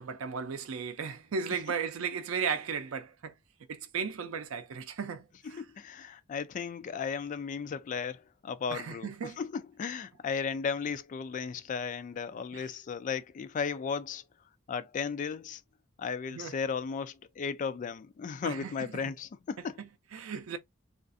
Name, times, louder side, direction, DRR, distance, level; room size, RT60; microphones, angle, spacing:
voice 1, 0.0-3.4 3.7-5.6 8.7-9.4 12.5-12.7 16.3-16.6 18.4-19.1 19.8-20.6, right 6 dB, 90° right, 0.4 m, -36 dB
voice 2, 5.4-14.2 14.7-15.6 16.0-19.8, left 6 dB, 40° left, 0.3 m, -35 dB
2.4 x 2.4 x 2.4 m
head